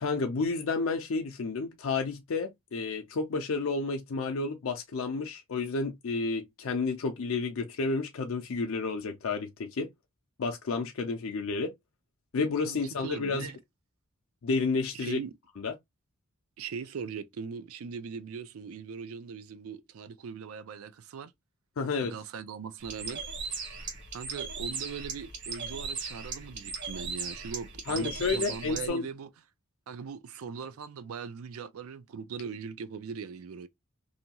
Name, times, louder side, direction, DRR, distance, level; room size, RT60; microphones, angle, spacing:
voice 1, 0.0-9.9 10.4-11.7 12.3-13.5 14.4-15.2 15.6-15.7 21.8-22.1 27.9-29.0, left 4 dB, 65° left, 0.5 m, -31 dB
voice 2, 12.6-13.6 14.9-15.3 16.6-21.3 22.0-23.2 24.1-29.3 29.9-33.7, right 6 dB, 75° right, 0.4 m, -40 dB
Bird, 22.8-28.9, right 4 dB, 55° right, 1.0 m, -38 dB
2.7 x 2.2 x 2.8 m
head